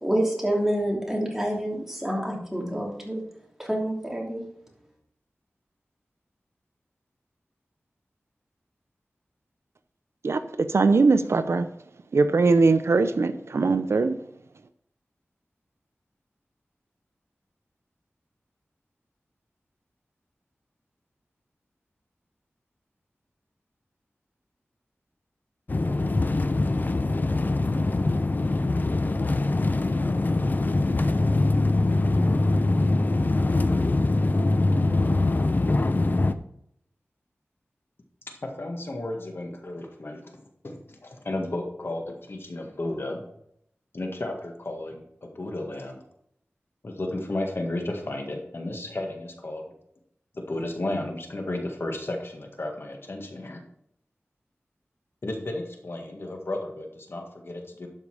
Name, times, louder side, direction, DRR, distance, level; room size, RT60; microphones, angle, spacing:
voice 1, 0.0-3.2 3.6-4.4, right 1 dB, 10° right, -2 dB, 3.0 m, -27 dB
voice 2, 10.7-11.7 12.1-14.2, right 3 dB, 75° right, 10 dB, 0.6 m, -21 dB
sound 1, 25.7-36.3, left 2 dB, 40° left, 0.6 m, -23 dB
voice 3, 38.3-43.3 43.9-46.0 46.8-49.6 50.3-53.6 55.2-57.9, left 2 dB, 60° left, 2 dB, 1.7 m, -33 dB
12.0 x 5.4 x 4.9 m, 0.72 s
wide cardioid pair, 80°, 5 cm